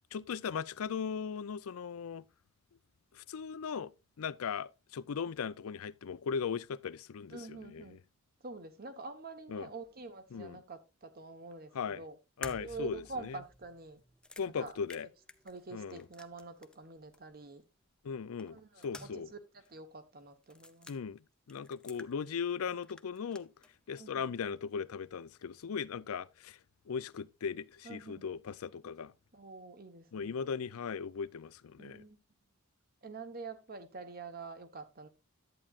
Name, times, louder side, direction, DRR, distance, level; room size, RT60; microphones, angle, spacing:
voice 1, 0.1-2.2 3.1-3.9 4.2-8.0 9.5-9.7 10.3-10.6 11.7-12.0 12.4-13.4 14.4-15.1 15.7-16.1 18.0-19.3 20.9-23.5 23.9-26.6 26.9-29.1 30.1-32.0, left 6 dB, 85° left, 0.5 m, -38 dB
voice 2, 7.3-8.0 8.4-12.2 12.6-14.0 14.6-14.7 15.4-17.6 18.4-19.2 19.7-20.9 23.9-24.3 27.8-28.3 29.3-30.4 31.8-32.2 33.0-35.1, right 3 dB, 45° right, 1.1 m, -46 dB
sound 1, 12.4-16.9 17.1-17.2 18.4-19.4 19.6-19.7 20.4-21.0 21.5-22.6 22.8-23.7, left 1 dB, 5° left, 0.5 m, -51 dB
11.0 x 8.5 x 2.4 m
head